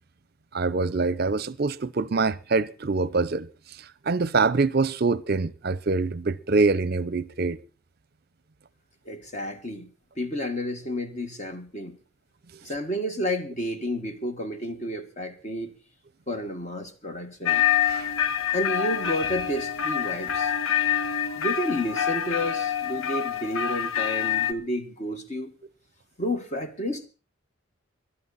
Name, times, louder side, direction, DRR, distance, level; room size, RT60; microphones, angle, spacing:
voice 1, 0.5-3.5 4.0-7.6 12.5-12.6 17.8-18.1, right 3 dB, 45° right, 0.6 m, -24 dB
voice 2, 9.0-12.0 12.6-15.7 16.3-17.6 18.5-20.5 21.3-25.5 26.2-27.1, equal, 35° left, 1.6 m, -31 dB
sound 1, 17.5-24.5, left 9 dB, 80° left, 0.8 m, -26 dB
21.5 x 11.5 x 4.1 m
head